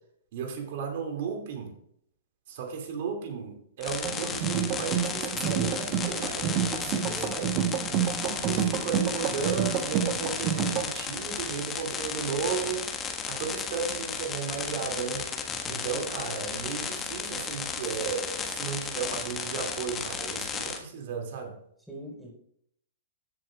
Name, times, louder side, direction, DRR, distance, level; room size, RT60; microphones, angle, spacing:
voice 1, 0.3-1.7 2.5-7.8 8.5-12.9 13.3-15.2 15.7-21.6, right 6 dB, 55° right, 3 dB, 2.4 m, -34 dB
sound 1, 3.8-20.8, left 6 dB, 20° left, 1.4 m, -34 dB
sound 2, 4.0-10.9, right 9 dB, 40° right, 1.0 m, -29 dB
voice 2, 15.5-16.0 21.9-22.3, equal, ahead, -3 dB, 4.3 m, -42 dB
14.5 x 7.7 x 2.4 m, 0.70 s
hypercardioid pair, 110°, 0 cm